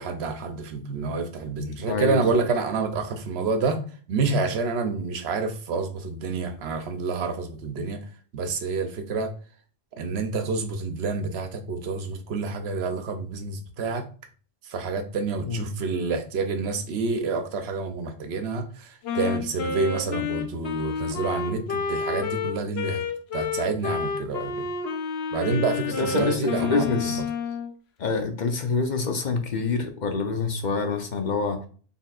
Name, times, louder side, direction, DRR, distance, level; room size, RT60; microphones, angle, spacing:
voice 1, 0.0-3.8 4.1-8.1 8.3-9.3 10.0-14.0 14.6-23.0 23.3-24.7 25.3-27.2, right 4 dB, 90° right, 8 dB, 0.9 m, -28 dB
voice 2, 1.9-2.2 15.4-15.6 26.0-27.2 28.0-31.6, left 4 dB, 50° left, 5 dB, 0.8 m, -26 dB
Wind instrument woodwind instrument, 19.0-27.7, left 5 dB, 80° left, 0.9 m, -30 dB
4.1 x 3.6 x 2.4 m, 0.41 s
omnidirectional pair, 1.0 m